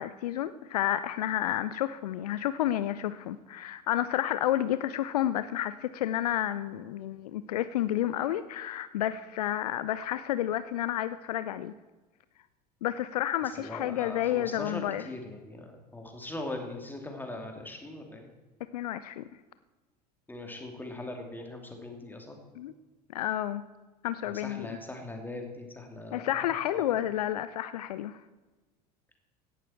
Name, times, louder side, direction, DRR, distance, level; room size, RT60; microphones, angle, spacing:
voice 1, 0.0-11.7 12.8-15.0 18.7-19.2 22.6-22.7 23.1-23.7 24.0-24.7 26.1-28.2, left 12 dB, 65° left, 14 dB, 0.5 m, -30 dB
voice 2, 13.6-18.3 20.3-22.4 24.2-26.8, left 2 dB, 10° left, 3 dB, 2.7 m, -41 dB
16.5 x 12.0 x 4.4 m, 1.2 s
figure-of-eight pair, 70°, 21 cm